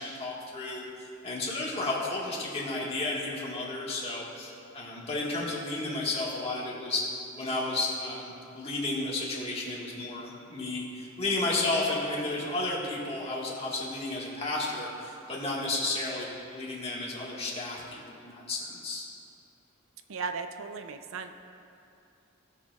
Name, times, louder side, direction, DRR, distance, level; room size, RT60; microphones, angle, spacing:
voice 1, 0.0-7.1 7.4-19.0, left 2 dB, 30° left, -5 dB, 1.6 m, -32 dB
voice 2, 20.1-21.3, right 5 dB, 75° right, 7 dB, 0.5 m, -36 dB
17.5 x 6.6 x 2.4 m, 2.7 s
head